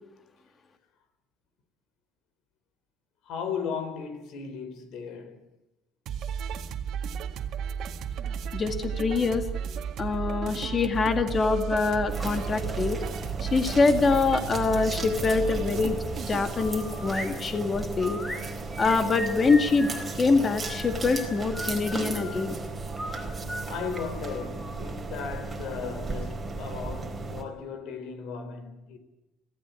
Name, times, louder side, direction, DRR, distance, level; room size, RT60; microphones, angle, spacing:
voice 1, 3.2-5.4 23.6-29.0, left 6 dB, 70° left, 4.2 m, -36 dB
sound 1, 6.1-16.6, right 7 dB, 55° right, 1.9 m, -34 dB
voice 2, 8.5-9.4 10.0-13.0 13.4-16.0 16.3-18.2 18.8-19.9 20.1-22.6, left 4 dB, 25° left, 2.1 m, -24 dB
sound 2, 12.1-27.4, right 3 dB, 15° right, 4.3 m, -35 dB
sound 3, 16.5-17.3 18.0-20.1 20.6-22.4 23.0-24.8, equal, 10° left, 4.8 m, -38 dB
26.0 x 16.5 x 8.4 m
cardioid pair, 150°, 0 cm